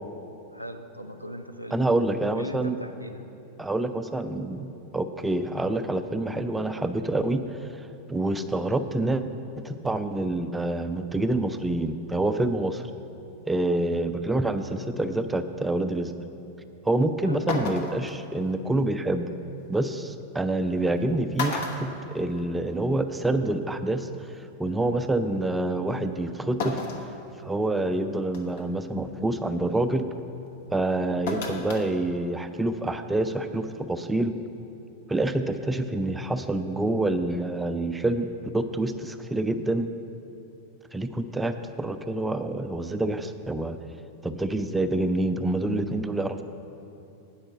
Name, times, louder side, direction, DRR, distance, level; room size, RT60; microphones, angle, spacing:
voice 1, 0.5-1.8 2.4-3.2 17.2-17.5, equal, 90° left, 6 dB, 0.5 m, -39 dB
voice 2, 1.7-2.8 3.6-9.2 9.6-12.8 13.5-16.1 16.8-19.3 19.7-21.9 22.1-24.1 24.4-26.8 27.4-30.1 30.7-34.3 35.1-38.3 38.5-39.9 40.9-43.8 44.2-46.4, right 2 dB, 10° right, 9 dB, 0.4 m, -27 dB
sound 1, 16.9-17.0 17.5-18.1 19.7-19.8 20.8-21.0 21.3-22.7 23.1-23.2 24.4-24.5 26.6-27.1 27.6-27.7 28.3-28.6 31.3-31.9 32.2-32.3, left 3 dB, 50° left, 0.9 m, -32 dB
8.8 x 5.5 x 6.6 m, 2.7 s
figure-of-eight pair, 90°, 0 cm